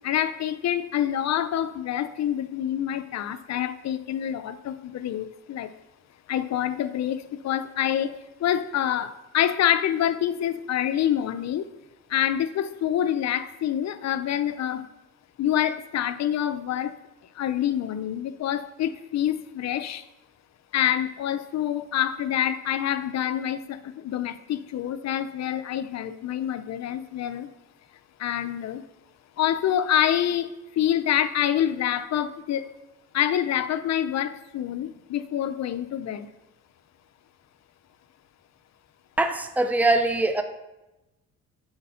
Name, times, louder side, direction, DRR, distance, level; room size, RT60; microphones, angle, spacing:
voice 1, 0.0-5.7 6.3-8.1 8.4-11.7 12.1-14.8 15.4-16.9 17.4-20.0 20.7-23.8 24.0-27.5 28.2-28.8 29.4-32.6 33.1-36.3, left 10 dB, 60° left, 11 dB, 0.6 m, -26 dB
voice 2, 39.2-40.4, right 2 dB, 5° right, 8 dB, 0.7 m, -22 dB
8.0 x 4.2 x 5.6 m, 0.99 s
cardioid pair, 90°, 30 cm